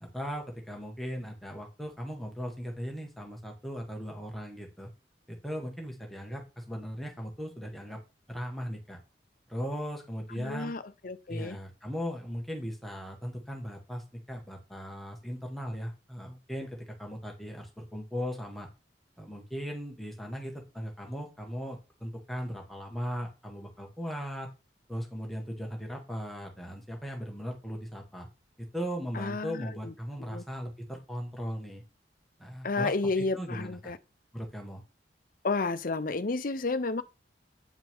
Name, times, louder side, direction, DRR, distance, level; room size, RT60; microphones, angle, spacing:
voice 1, 0.0-4.9 5.3-8.0 8.3-9.0 9.5-10.7 11.3-18.7 19.2-24.5 24.9-28.3 28.6-31.8 32.4-33.9 34.3-34.8, equal, ahead, 1.5 m, -38 dB
voice 2, 10.4-11.6 29.1-29.9 30.3-30.4 32.6-34.0 35.4-37.0, left 3 dB, 55° left, 0.8 m, -31 dB
9.1 x 5.8 x 3.6 m
head